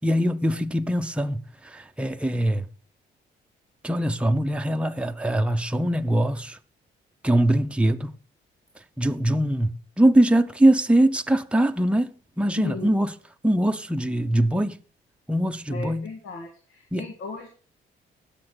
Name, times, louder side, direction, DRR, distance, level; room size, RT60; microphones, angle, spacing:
voice 1, 0.0-2.7 3.8-6.6 7.2-8.1 9.0-12.1 12.4-13.1 13.4-14.8 15.3-16.1 16.9-17.0, right 1 dB, 5° right, 0.7 m, -22 dB
voice 2, 15.7-17.5, left 4 dB, 90° left, 1.8 m, -36 dB
18.0 x 6.7 x 3.8 m
cardioid pair, 90°, 20 cm